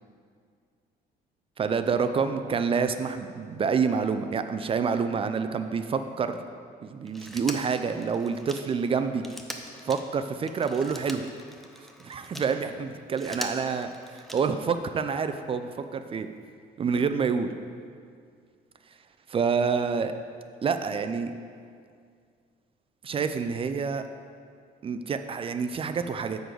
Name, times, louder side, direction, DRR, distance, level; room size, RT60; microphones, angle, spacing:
voice 1, 1.6-6.4 6.8-9.2 9.8-11.3 12.0-16.3 16.8-17.5 19.3-20.1 20.6-21.3 23.0-24.0 24.8-26.4, right 5 dB, 35° right, 9 dB, 0.4 m, -27 dB
Telephone, 7.1-12.5 13.0-14.7 16.0-16.1, equal, ahead, 0.7 m, -42 dB
9.3 x 3.9 x 6.7 m, 2.2 s
cardioid pair, 110°, 17 cm